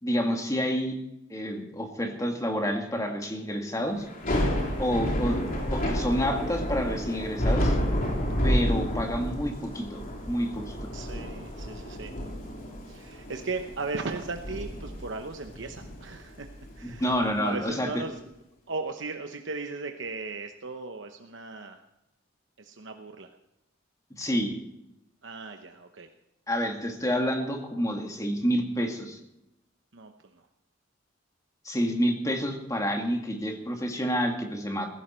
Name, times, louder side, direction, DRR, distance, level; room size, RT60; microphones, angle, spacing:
voice 1, 0.0-1.0 1.3-4.1 4.8-5.4 5.7-7.8 8.4-10.9 16.8-17.9 24.2-24.6 26.5-29.2 31.7-34.9, equal, 15° left, 3 dB, 2.1 m, -28 dB
Thunder / Rain, 4.1-17.2, equal, 45° left, 3.5 m, -30 dB
voice 2, 10.9-12.1 12.9-18.2 18.7-21.8 22.6-23.4 25.2-26.1 29.9-30.5, right 3 dB, 70° right, 5 dB, 0.9 m, -37 dB
16.5 x 15.5 x 4.4 m, 0.89 s
head